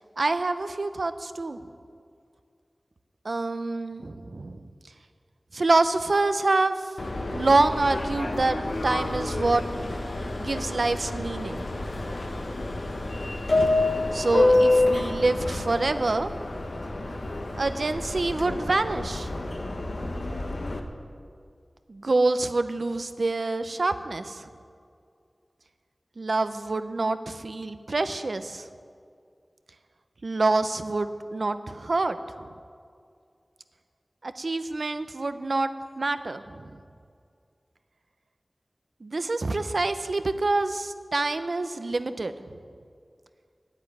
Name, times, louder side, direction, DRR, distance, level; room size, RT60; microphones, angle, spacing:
voice 1, 0.2-1.6 3.2-4.7 5.5-6.8 7.3-8.6 8.8-9.6 10.4-12.0 14.1-16.3 17.5-19.5 21.9-24.5 26.2-28.7 30.2-32.2 34.2-35.7 36.0-36.7 39.0-42.6, right 3 dB, 70° right, 11 dB, 0.6 m, -26 dB
Subway metro underground, 7.0-20.8, left 2 dB, 75° left, 1.0 m, -28 dB
9.7 x 8.1 x 9.3 m, 2.3 s
wide cardioid pair, 45°, 0 cm